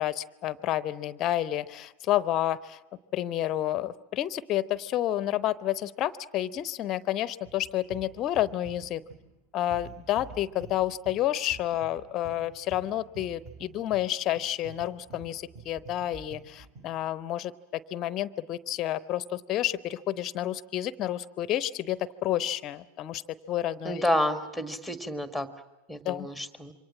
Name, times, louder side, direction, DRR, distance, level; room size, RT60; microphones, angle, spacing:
voice 1, 0.0-2.8 3.1-9.0 9.5-23.2 23.5-24.0 26.0-26.3, left 13 dB, 35° left, 18 dB, 0.8 m, -30 dB
sound 1, 7.5-17.0, right 4 dB, 35° right, 4.2 m, -49 dB
voice 2, 23.8-25.5 25.9-26.7, left 1 dB, ahead, 11 dB, 1.7 m, -29 dB
27.5 x 24.0 x 7.4 m, 1.0 s
figure-of-eight pair, 90°, 0 cm